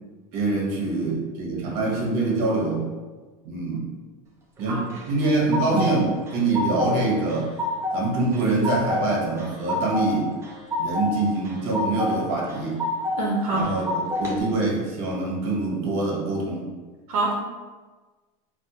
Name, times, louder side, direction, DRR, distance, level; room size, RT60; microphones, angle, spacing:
voice 1, 0.3-2.9 3.4-3.9 4.6-7.5 7.9-10.3 10.8-12.8 13.5-16.7, right 2 dB, 55° right, -2 dB, 0.9 m, -25 dB
sound 1, 4.9-5.9 6.3-7.0 7.3-8.0 8.3-9.0 9.4-10.1 10.4-11.1 11.4-12.1 12.5-13.2 13.6-14.3, left 2 dB, 15° right, 0.4 m, -27 dB
voice 2, 13.2-13.7 17.1-17.3, right 2 dB, 90° right, -2 dB, 0.6 m, -25 dB
3.4 x 2.1 x 2.7 m, 1.3 s
supercardioid pair, 155°, 18 cm